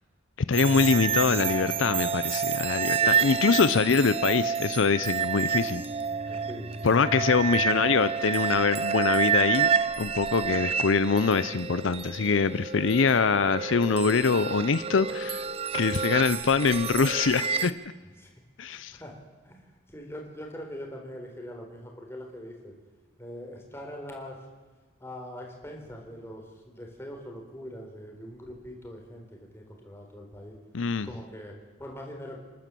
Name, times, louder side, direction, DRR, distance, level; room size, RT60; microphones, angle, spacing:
voice 1, 0.4-5.8 6.8-9.7 10.0-15.5 15.7-17.7 18.6-19.0 30.7-31.1, left 5 dB, 75° left, 14 dB, 0.6 m, -24 dB
sound 1, 0.5-17.7, right 7 dB, 30° right, 0.6 m, -29 dB
voice 2, 2.9-3.6 6.3-6.7 18.2-18.3 18.6-19.2 19.4-22.7 23.2-24.4 25.0-30.6 31.0-32.4, equal, 15° left, 1 dB, 4.0 m, -42 dB
28.5 x 12.0 x 7.6 m, 1.3 s
head